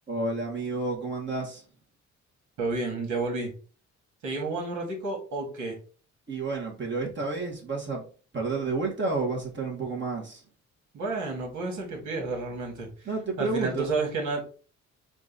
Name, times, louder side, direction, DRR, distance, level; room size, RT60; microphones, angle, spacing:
voice 1, 0.1-1.6 6.3-8.0 8.3-10.4 13.1-13.9, right 3 dB, 40° right, 1.8 m, -30 dB
voice 2, 2.6-3.5 4.2-5.7 10.9-13.1 13.4-14.4, right 3 dB, 70° right, 2.2 m, -31 dB
4.5 x 2.7 x 4.1 m
cardioid pair, 90°, 30 cm